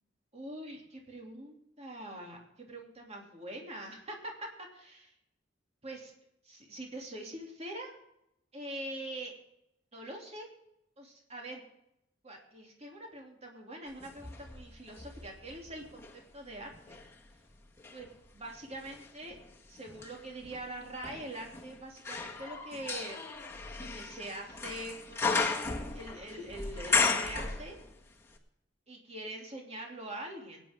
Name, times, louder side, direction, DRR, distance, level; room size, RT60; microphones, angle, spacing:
voice 1, 0.3-4.5 4.8-5.1 5.8-6.1 6.4-7.9 8.5-9.3 9.9-10.5 11.0-11.6 12.2-17.0 17.9-19.4 19.7-23.3 23.8-25.5 25.9-27.8 28.9-30.6, right 1 dB, 35° right, 0 dB, 2.9 m, -44 dB
sound 1, 14.0-16.2 16.7-28.1 28.3-28.4, left 4 dB, 15° left, 1.7 m, -35 dB
21.0 x 9.7 x 3.6 m, 0.81 s
head